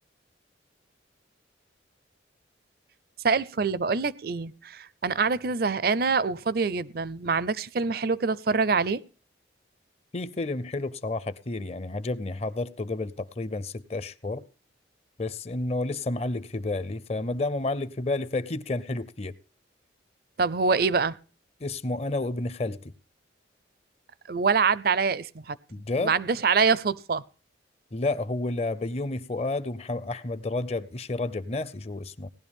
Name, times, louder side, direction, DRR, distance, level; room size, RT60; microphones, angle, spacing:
voice 1, 3.2-9.0 20.4-21.1 24.3-25.6 26.0-27.2, right 5 dB, 50° right, 0.5 m, -25 dB
voice 2, 10.1-14.4 15.2-19.3 21.6-22.9 25.7-26.1 27.9-32.3, left 2 dB, 35° left, 0.6 m, -30 dB
18.5 x 11.5 x 3.6 m
head